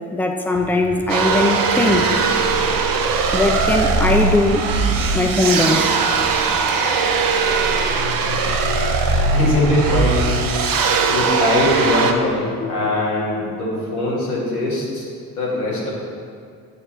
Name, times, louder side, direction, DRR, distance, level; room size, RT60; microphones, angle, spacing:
voice 1, 0.1-2.1 3.3-4.6 5.1-6.0, left 2 dB, 5° left, 3 dB, 0.8 m, -19 dB
sound 1, 0.5-6.8, right 2 dB, 70° right, 1.1 m, -35 dB
sound 2, 1.1-12.1, right 4 dB, 50° right, 0.9 m, -19 dB
sound 3, 7.3-14.2, left 11 dB, 50° left, 0.5 m, -32 dB
voice 2, 9.0-10.3 10.7-15.1 15.4-15.9, left 1 dB, 90° left, -5 dB, 1.9 m, -22 dB
8.0 x 6.8 x 4.3 m, 2.3 s
hypercardioid pair, 50°, 43 cm